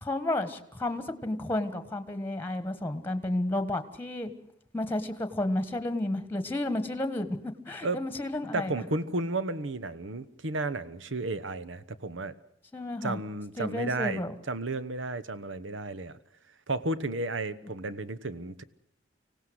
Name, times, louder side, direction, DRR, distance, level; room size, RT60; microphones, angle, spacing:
voice 1, 0.0-4.3 4.7-7.4 7.7-8.7 12.7-13.2 13.6-14.3, left 1 dB, 10° left, 11 dB, 1.5 m, -31 dB
voice 2, 8.5-12.3 13.0-16.1 16.7-18.6, right 2 dB, 75° right, 15 dB, 1.1 m, -33 dB
24.5 x 17.5 x 8.0 m, 0.72 s
head